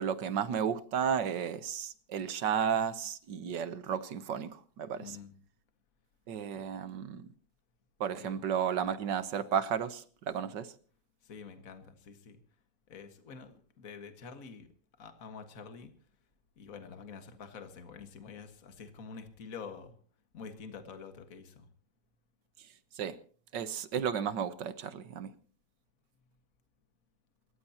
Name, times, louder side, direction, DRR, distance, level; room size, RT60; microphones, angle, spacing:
voice 1, 0.0-5.0 6.3-7.3 8.0-10.7 22.9-23.2 23.5-25.3, right 8 dB, 65° right, 1.6 m, -33 dB
voice 2, 5.0-5.3 6.5-6.7 8.2-8.4 11.2-12.4 12.9-14.7 15.0-15.9 16.6-20.0 20.3-21.7, left 5 dB, 45° left, 2.0 m, -47 dB
28.0 x 15.0 x 2.9 m
omnidirectional pair, 2.1 m